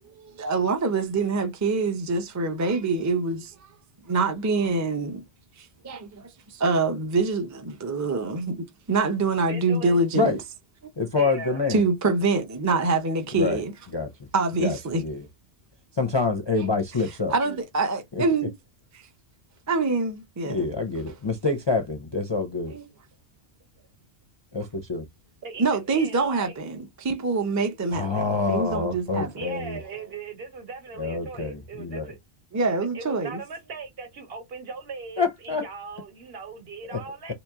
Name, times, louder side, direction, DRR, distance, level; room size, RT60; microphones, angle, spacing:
voice 1, 0.1-3.7 4.1-5.2 5.6-10.4 11.7-13.7 14.3-15.0 17.3-18.5 19.7-20.7 22.7-22.9 25.6-29.3 32.5-33.4, right 3 dB, 20° right, 0.4 m, -25 dB
voice 2, 9.4-10.0 11.1-11.6 17.4-17.6 23.8-23.9 25.4-26.6 29.4-32.2 32.7-37.3, right 5 dB, 60° right, 1.2 m, -39 dB
voice 3, 11.0-11.8 13.4-13.6 13.9-14.3 14.6-15.2 15.9-17.3 18.1-18.2 20.5-22.8 24.5-25.0 27.9-29.8 31.0-32.1 35.2-35.6 36.9-37.0, left 3 dB, 35° left, 0.4 m, -26 dB
2.9 x 2.9 x 3.5 m
omnidirectional pair, 1.1 m